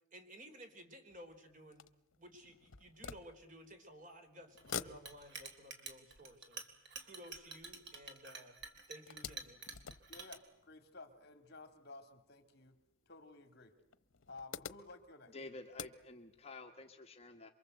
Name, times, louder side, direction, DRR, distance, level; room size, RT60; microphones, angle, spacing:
voice 1, 0.1-1.9 2.2-8.6 8.9-9.7, equal, 40° right, 6 dB, 3.9 m, -55 dB
sound 1, 1.1-4.0 4.4-8.3 8.7-11.3 12.2-12.3 12.6-12.7 13.8-16.5, left 7 dB, 80° left, 0.9 m, -50 dB
Chink clink, 4.6-10.4, right 4 dB, 55° right, 3.3 m, -49 dB
voice 2, 10.1-12.8 13.1-13.7 14.3-15.3, left 3 dB, 50° left, 8 dB, 2.9 m, -54 dB
voice 3, 15.3-17.5, left 2 dB, 30° left, 4 dB, 1.5 m, -51 dB
28.0 x 23.5 x 8.0 m, 0.84 s
head